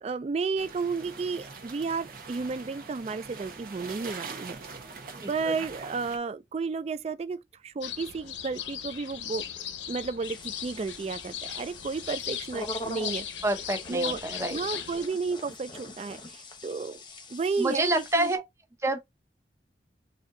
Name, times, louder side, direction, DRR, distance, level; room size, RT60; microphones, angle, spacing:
voice 1, 0.0-4.6 5.3-9.4 9.9-13.3 13.9-14.2 14.5-17.0 17.3-18.3, right 4 dB, 35° right, 0.3 m, -32 dB
sound 1, 0.6-6.2, right 4 dB, 50° right, 1.0 m, -43 dB
voice 2, 5.1-5.6 13.4-14.6 17.6-18.4 18.8-19.0, right 1 dB, 15° right, 0.7 m, -28 dB
sound 2, 7.8-15.1, left 9 dB, 80° left, 0.6 m, -38 dB
sound 3, 10.2-18.4, left 1 dB, 25° left, 0.8 m, -43 dB
4.1 x 2.6 x 3.8 m
head